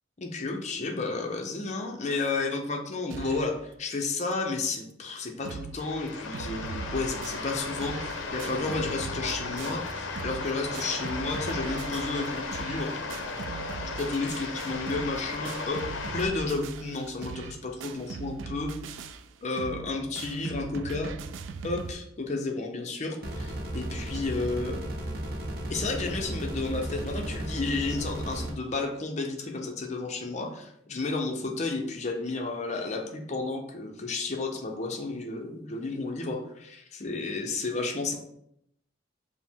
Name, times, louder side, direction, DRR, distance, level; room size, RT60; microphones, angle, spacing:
voice 1, 0.2-12.9 13.9-19.0 19.4-21.1 21.6-24.8 25.7-38.2, left 3 dB, 35° left, 3 dB, 0.5 m, -32 dB
sound 1, 3.1-3.6 4.0-4.1 4.3-4.4 4.9-5.0 5.2-5.8 6.1-21.9, right 5 dB, 75° right, 0.3 m, -40 dB
sound 2, 5.8-16.3, left 3 dB, 85° left, 0.5 m, -35 dB
sound 3, 23.2-28.5, right 1 dB, 50° right, 0.7 m, -34 dB
4.9 x 2.0 x 3.5 m, 0.75 s
head